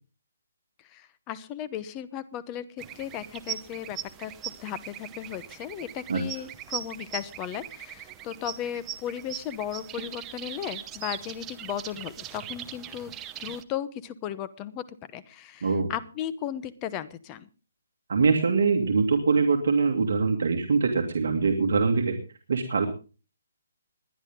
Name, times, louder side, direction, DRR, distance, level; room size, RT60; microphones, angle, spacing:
voice 1, 0.9-2.7 2.9-4.3 4.6-13.1 13.4-14.8 15.1-17.5, left 10 dB, 20° left, 14 dB, 0.9 m, -36 dB
sound 1, 2.8-13.6, right 12 dB, 15° right, 0.8 m, -40 dB
voice 2, 15.6-15.9 18.1-22.2 22.5-22.9, right 4 dB, 65° right, 2 dB, 2.3 m, -23 dB
21.0 x 10.5 x 3.7 m, 0.34 s
hypercardioid pair, 165°, 0 cm